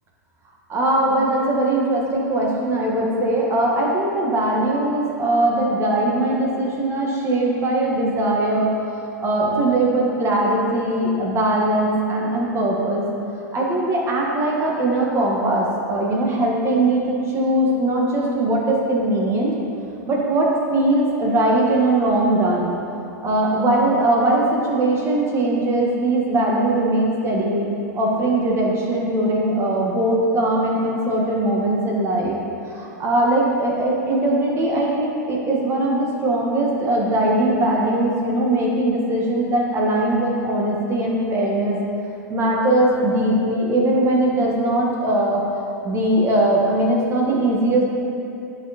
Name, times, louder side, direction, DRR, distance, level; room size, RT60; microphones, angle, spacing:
voice 1, 0.7-8.7 9.2-13.0 13.5-19.5 20.1-22.7 23.2-27.7 27.9-32.4 32.7-41.8 42.3-45.4 45.8-47.8, right 1 dB, 25° right, -3 dB, 1.8 m, -20 dB
11.0 x 4.7 x 4.3 m, 2.8 s
hypercardioid pair, 115°, 10 cm